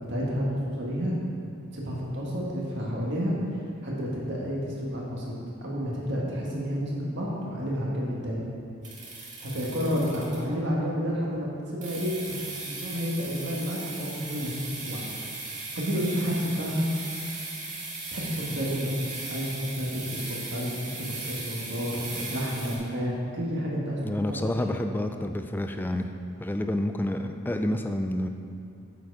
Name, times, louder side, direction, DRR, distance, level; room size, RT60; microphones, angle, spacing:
voice 1, 0.1-1.2 1.7-5.3 5.6-8.5 9.4-12.4 12.7-15.0 15.8-16.9 18.1-19.0 19.3-20.0 20.3-20.7 21.0-24.0 24.3-24.4, equal, 55° right, -4 dB, 1.8 m, -30 dB
sound 1, 8.8-10.6 11.8-22.8, right 3 dB, 35° right, 1.9 m, -38 dB
voice 2, 24.0-26.1 26.4-28.3, left 1 dB, 10° left, 6 dB, 0.3 m, -29 dB
7.8 x 7.0 x 4.9 m, 2.5 s
head